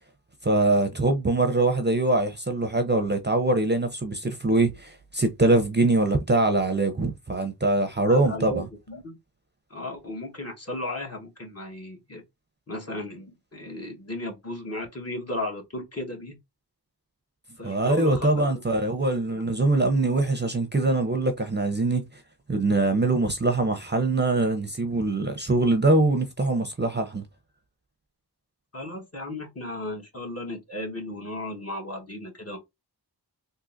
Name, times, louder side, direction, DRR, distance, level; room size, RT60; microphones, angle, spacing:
voice 1, 0.4-8.6 17.6-22.0 22.5-27.2, right 2 dB, 25° right, 0.6 m, -23 dB
voice 2, 8.1-9.2 9.7-12.2 12.7-16.3 17.6-18.6 28.7-32.6, left 1 dB, 35° left, 1.2 m, -35 dB
3.8 x 2.7 x 2.5 m
wide cardioid pair, 60°, 40 cm